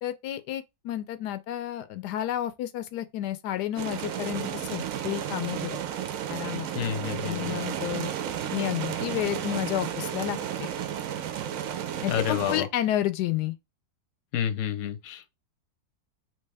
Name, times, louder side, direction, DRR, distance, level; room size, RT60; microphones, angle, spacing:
voice 1, 0.0-5.8 6.3-6.7 7.2-8.1 8.5-10.7 12.0-13.6, left 13 dB, 90° left, 1.2 m, -31 dB
sound 1, 3.8-12.6, right 9 dB, 70° right, 0.9 m, -33 dB
voice 2, 6.7-7.6 12.1-12.7 14.3-15.3, left 9 dB, 65° left, 0.8 m, -29 dB
3.3 x 2.9 x 3.4 m
omnidirectional pair, 1.7 m